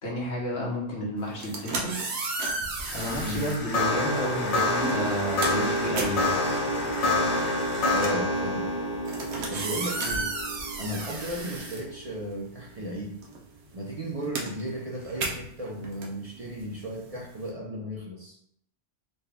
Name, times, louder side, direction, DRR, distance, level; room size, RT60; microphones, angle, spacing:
voice 1, 0.0-2.0 2.9-6.4, equal, 75° left, -3 dB, 1.4 m, -31 dB
sound 1, 1.3-3.7 4.5-4.7 5.0-12.6 12.8-17.5, right 3 dB, 80° right, 1.0 m, -34 dB
sound 2, 2.8-12.2, left 1 dB, 40° left, 0.6 m, -28 dB
voice 2, 7.9-8.7 9.5-10.3 10.8-13.2 13.7-18.4, equal, 40° right, -3 dB, 0.6 m, -35 dB
4.1 x 2.2 x 3.4 m, 0.70 s
omnidirectional pair, 1.1 m